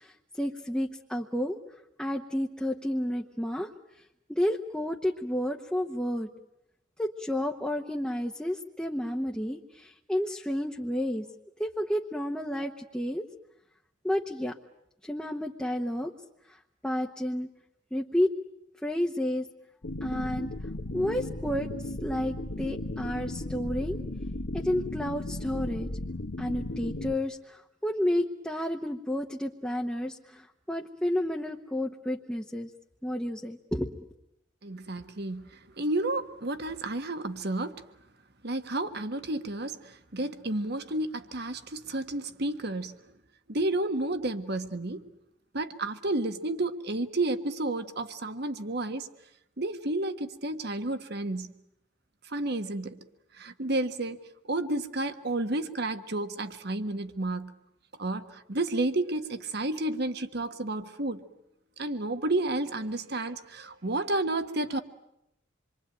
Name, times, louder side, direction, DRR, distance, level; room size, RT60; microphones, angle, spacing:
voice 1, 0.0-1.6 2.0-3.7 4.3-6.3 7.0-11.3 11.6-13.2 14.0-14.6 15.0-16.1 16.5-17.5 17.9-18.3 18.8-19.5 20.0-20.5 20.9-24.0 24.5-25.9 26.4-32.7 33.0-34.1, left 1 dB, 5° left, 0 dB, 1.1 m, -31 dB
sound 1, 19.8-27.2, left 1 dB, 70° left, 1.3 m, -35 dB
voice 2, 34.6-37.8 38.4-42.9 43.5-45.0 45.5-49.1 49.6-51.5 52.3-53.0 53.3-54.2 54.5-57.5 58.0-61.2 61.8-64.8, right 2 dB, 55° right, 9 dB, 1.6 m, -31 dB
27.5 x 23.5 x 9.1 m, 0.84 s
head